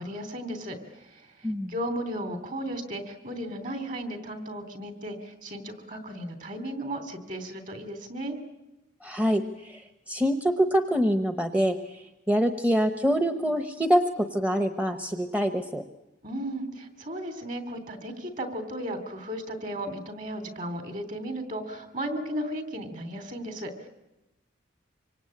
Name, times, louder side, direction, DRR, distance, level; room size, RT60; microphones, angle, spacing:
voice 1, 0.0-8.4 16.2-23.9, right 1 dB, 40° right, 8 dB, 3.3 m, -35 dB
voice 2, 9.0-15.8, equal, 10° right, 7 dB, 0.9 m, -25 dB
25.5 x 25.5 x 8.7 m, 0.97 s
head